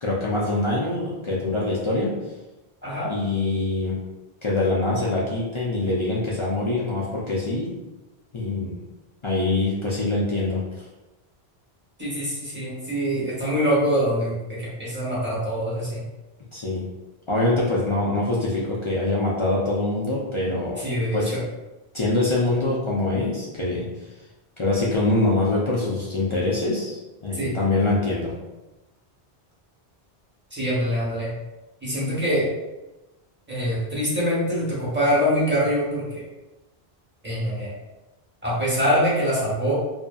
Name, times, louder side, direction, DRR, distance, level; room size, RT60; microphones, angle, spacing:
voice 1, 0.0-2.1 3.1-4.0 4.4-7.7 8.3-8.8 9.2-10.6 16.5-16.8 17.3-20.8 21.1-21.3 21.9-23.9 24.6-28.3, left 2 dB, 50° left, -6 dB, 0.3 m, -24 dB
voice 2, 12.0-16.0 20.8-21.4 27.3-27.5 30.5-31.3 31.8-32.5 33.5-36.2 37.2-37.7 38.4-39.7, equal, 10° right, -8 dB, 0.9 m, -24 dB
2.6 x 2.5 x 2.3 m, 1.1 s
omnidirectional pair, 1.1 m